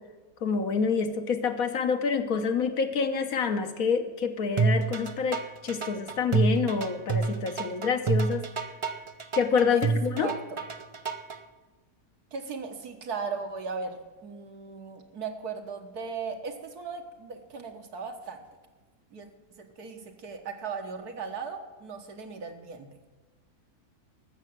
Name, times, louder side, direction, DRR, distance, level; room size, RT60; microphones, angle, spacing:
voice 1, 0.4-8.5 9.4-10.3, left 5 dB, 65° left, 7 dB, 1.5 m, -27 dB
sound 1, 4.6-11.4, right 4 dB, 45° right, 0.4 m, -28 dB
voice 2, 10.2-10.6 12.3-18.4 19.1-19.3 19.6-22.9, right 5 dB, 80° right, 4 dB, 1.9 m, -37 dB
13.0 x 7.6 x 7.9 m, 1.3 s
omnidirectional pair, 1.6 m